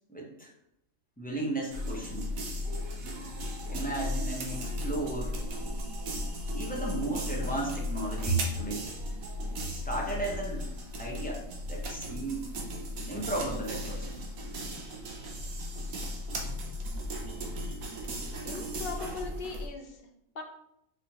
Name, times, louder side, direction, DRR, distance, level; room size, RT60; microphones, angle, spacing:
voice 1, 0.1-0.5 1.2-2.3 3.7-5.4 6.5-8.9 9.7-10.6 11.0-12.5 13.1-14.1, right 2 dB, 5° left, -3 dB, 0.8 m, -34 dB
sound 1, 1.7-19.7, left 1 dB, 75° right, 1.3 m, -36 dB
voice 2, 18.4-20.0 20.3-20.4, left 4 dB, 50° left, 2 dB, 0.7 m, -39 dB
4.8 x 3.6 x 2.9 m, 0.78 s
omnidirectional pair, 1.5 m